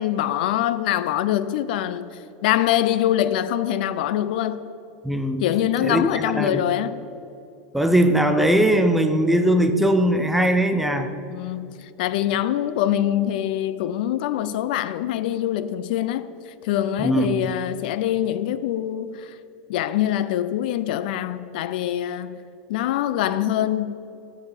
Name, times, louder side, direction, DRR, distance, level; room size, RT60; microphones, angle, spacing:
voice 1, 0.0-4.7 5.4-7.0 11.3-19.4 19.7-22.4 22.7-23.9, left 12 dB, 65° left, 0.4 m, -24 dB
voice 2, 5.0-5.4 5.8-6.6 7.7-11.1 17.0-17.5, right 1 dB, 5° right, 0.4 m, -20 dB
9.5 x 4.0 x 6.6 m
supercardioid pair, 150°, 5 cm